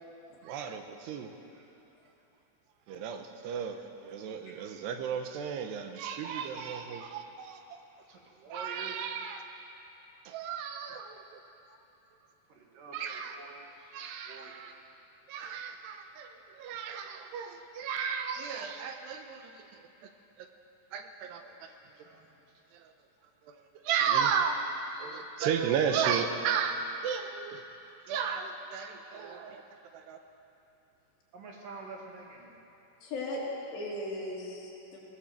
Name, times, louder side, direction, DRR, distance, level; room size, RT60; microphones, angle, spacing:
voice 1, 0.4-1.4 2.9-7.6 8.5-9.4 10.3-11.4 12.9-13.4 13.9-14.7 15.3-20.1 20.4-20.5 20.9-21.7 22.7-22.9 23.4-24.6 24.9-27.7 28.1-29.6 29.9-30.2, right 7 dB, 80° right, 6 dB, 3.1 m, -34 dB
voice 2, 8.1-8.9 12.5-14.0 14.3-14.6 21.3-22.3 25.7-25.8 31.3-32.6, right 4 dB, 55° right, 0 dB, 3.4 m, -48 dB
voice 3, 33.0-33.4 33.7-35.0, left 1 dB, 75° left, -4 dB, 5.4 m, -37 dB
19.0 x 19.0 x 7.5 m, 2.9 s
omnidirectional pair, 4.9 m